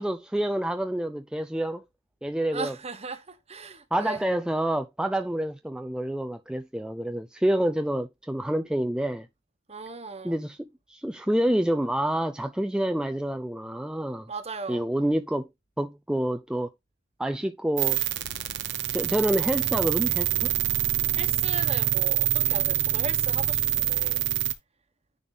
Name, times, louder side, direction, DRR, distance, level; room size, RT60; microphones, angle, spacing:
voice 1, 0.0-1.8 2.2-2.7 3.9-9.3 10.2-14.3 14.7-15.5 15.8-16.7 17.2-18.0 18.9-20.5, right 1 dB, 5° right, 0.4 m, -27 dB
voice 2, 2.5-4.2 9.7-10.4 14.3-14.8 21.1-24.2, right 4 dB, 30° right, 1.1 m, -37 dB
sound 1, 17.8-24.5, right 11 dB, 60° right, 0.9 m, -26 dB
9.9 x 3.5 x 4.0 m
head